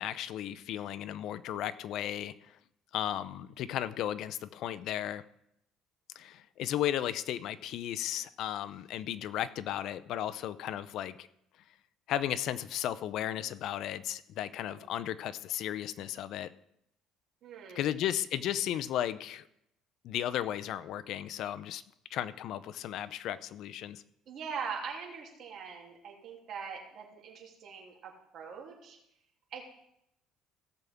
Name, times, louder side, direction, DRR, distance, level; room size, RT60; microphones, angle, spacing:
voice 1, 0.0-2.5 2.9-5.2 6.2-11.3 12.1-16.5 17.7-19.5 20.0-21.8 22.1-24.0, left 11 dB, 65° left, 14 dB, 0.5 m, -35 dB
voice 2, 14.4-14.9 17.4-18.0 24.3-29.0 29.5-29.7, right 6 dB, 55° right, -1 dB, 2.9 m, -42 dB
17.0 x 7.0 x 3.6 m, 0.78 s
cardioid pair, 115°, 0 cm